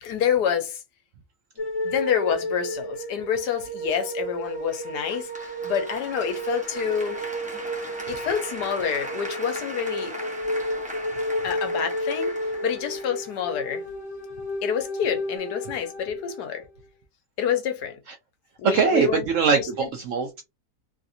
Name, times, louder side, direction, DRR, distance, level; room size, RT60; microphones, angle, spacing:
voice 1, 0.0-0.8 1.8-7.2 8.1-10.1 11.4-12.3 12.6-13.8 14.6-16.6 17.4-18.0 18.6-19.2 19.6-19.7, left 8 dB, 80° left, 1.3 m, -27 dB
sound 1, 1.6-16.7, equal, 30° left, 0.8 m, -32 dB
Applause, 4.7-13.7, right 1 dB, 10° right, 0.4 m, -39 dB
voice 2, 18.6-20.4, right 5 dB, 70° right, 0.7 m, -22 dB
3.2 x 2.5 x 2.7 m
omnidirectional pair, 1.8 m